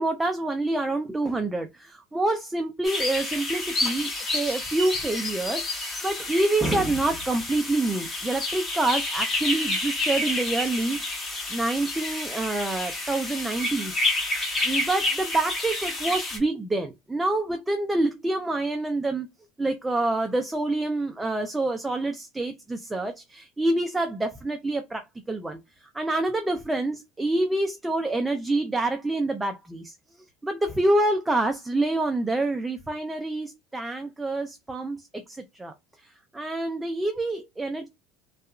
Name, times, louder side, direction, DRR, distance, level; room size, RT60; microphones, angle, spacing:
voice 1, 0.0-11.2 11.5-14.3 14.6-19.3 19.6-35.7 36.0-37.9, right 2 dB, 10° right, 0.3 m, -27 dB
sound 1, 2.8-16.4, left 2 dB, 20° left, 0.8 m, -29 dB
2.7 x 2.2 x 2.3 m
cardioid pair, 155°, 0 cm